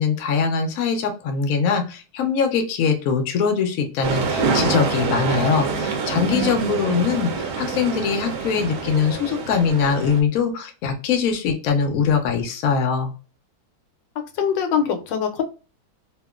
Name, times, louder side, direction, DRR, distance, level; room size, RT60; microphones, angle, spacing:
voice 1, 0.0-13.1, left 6 dB, 65° left, 4 dB, 0.9 m, -22 dB
sound 1, 4.0-10.2, right 4 dB, 65° right, 0.8 m, -26 dB
voice 2, 6.2-6.7 14.4-15.4, left 6 dB, 90° left, 6 dB, 1.3 m, -23 dB
2.9 x 2.4 x 2.3 m, 0.34 s
omnidirectional pair, 1.9 m